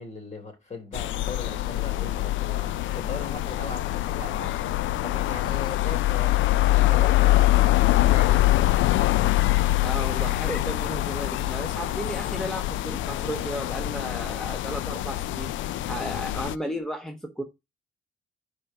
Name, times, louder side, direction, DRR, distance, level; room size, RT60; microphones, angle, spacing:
voice 1, 0.0-4.5 5.0-6.3 6.7-8.9, left 3 dB, 35° left, 3.3 m, -38 dB
sound 1, 0.9-16.5, left 16 dB, 75° left, 0.4 m, -24 dB
Glass, 1.1-16.8, right 5 dB, 25° right, 2.5 m, -51 dB
voice 2, 9.8-15.6 15.9-17.4, equal, 5° left, 1.1 m, -34 dB
5.4 x 5.0 x 5.5 m
cardioid pair, 90°, 20 cm